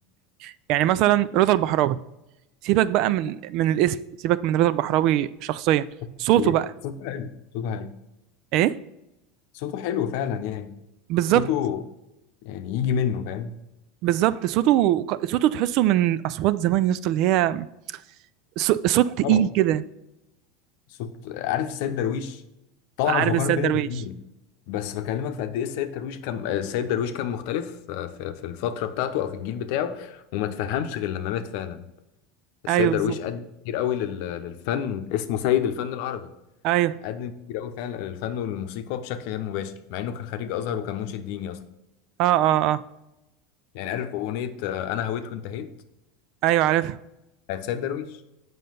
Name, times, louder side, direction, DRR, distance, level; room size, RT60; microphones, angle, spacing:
voice 1, 0.4-2.0 2.6-5.9 6.2-6.7 8.5-8.8 11.1-11.5 14.0-17.7 18.6-19.8 23.1-23.9 32.7-33.1 36.6-37.0 42.2-42.8 46.4-47.0, right 13 dB, 60° right, 0.3 m, -21 dB
voice 2, 6.8-7.9 9.5-10.7 11.3-11.8 12.4-13.5 19.2-19.5 21.0-22.4 23.0-24.1 24.7-31.8 32.6-36.3 37.0-41.6 43.7-45.7 47.5-48.2, left 9 dB, 65° left, 0.7 m, -29 dB
7.4 x 5.5 x 3.9 m
hypercardioid pair, 100°, 0 cm